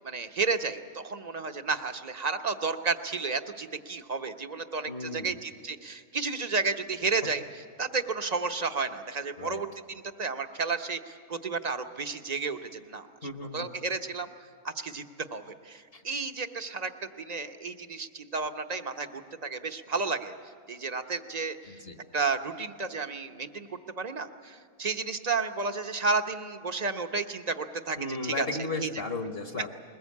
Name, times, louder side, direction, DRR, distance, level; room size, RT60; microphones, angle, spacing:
voice 1, 0.0-7.4 7.8-13.1 13.5-14.3 14.6-15.1 15.3-16.9 17.2-20.3 20.7-21.8 22.1-23.7 24.0-28.5 28.8-28.9, right 4 dB, 35° right, 7 dB, 0.8 m, -32 dB
voice 2, 4.8-5.4 9.4-9.6 13.2-13.7 15.9-16.0 21.7-22.0 28.0-29.7, left 3 dB, 45° left, 5 dB, 1.4 m, -35 dB
21.5 x 19.5 x 8.4 m, 2.1 s
omnidirectional pair, 1.5 m